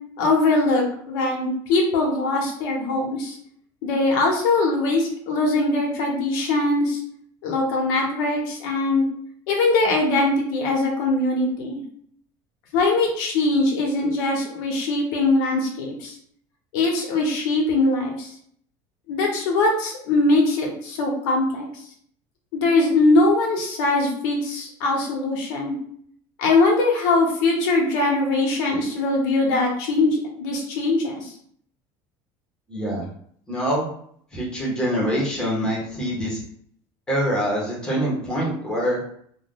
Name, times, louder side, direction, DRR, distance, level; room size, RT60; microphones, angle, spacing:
voice 1, 0.2-3.4 3.8-7.0 7.4-9.0 9.5-11.8 12.7-16.1 16.7-18.3 19.1-21.7 22.5-25.7 26.4-31.3, left 2 dB, 90° left, 0 dB, 0.9 m, -21 dB
voice 2, 32.7-33.0 33.5-33.9 34.3-36.4 37.1-39.0, equal, 5° left, -4 dB, 0.8 m, -24 dB
2.4 x 2.2 x 3.6 m, 0.63 s
cardioid pair, 180°, 10 cm